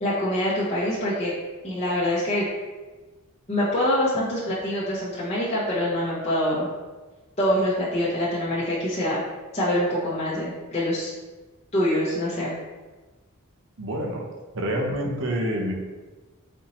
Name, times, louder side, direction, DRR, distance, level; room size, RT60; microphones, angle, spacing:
voice 1, 0.0-1.3 1.6-2.5 3.5-6.7 7.4-9.2 9.5-11.1 11.7-12.6, left 1 dB, 30° left, -8 dB, 0.8 m, -25 dB
voice 2, 13.8-14.3 14.5-15.7, equal, 60° right, 0 dB, 0.7 m, -27 dB
4.3 x 2.7 x 4.1 m, 1.2 s
head